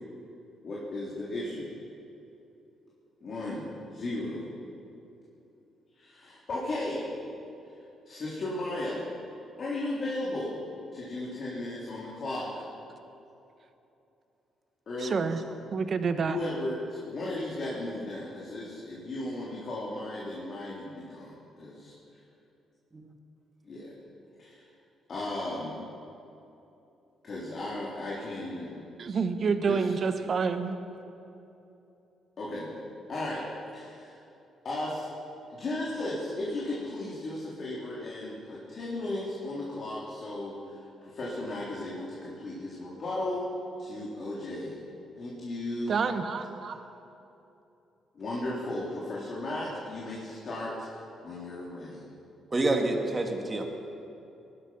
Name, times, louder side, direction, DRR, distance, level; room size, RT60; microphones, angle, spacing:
voice 1, 0.6-1.7 3.2-4.5 5.9-7.1 7.6-9.1 9.6-10.6 10.9-12.5 14.9-15.2 16.1-22.2 23.6-23.9 24.4-24.7 25.1-25.8 27.2-28.8 29.6-29.9 32.4-32.8 33.1-34.2 34.6-35.1 35.5-43.5 43.8-44.8 45.2-46.0 48.1-50.9 51.2-52.1, left 1 dB, 50° left, -6 dB, 3.6 m, -35 dB
voice 2, 15.0-15.4 15.7-16.4 29.0-30.8 45.9-46.8, right 5 dB, 50° right, 9 dB, 1.2 m, -28 dB
voice 3, 52.5-53.7, right 2 dB, 25° right, 2 dB, 2.3 m, -27 dB
20.0 x 12.5 x 5.7 m, 2.9 s
cardioid pair, 90°, 0 cm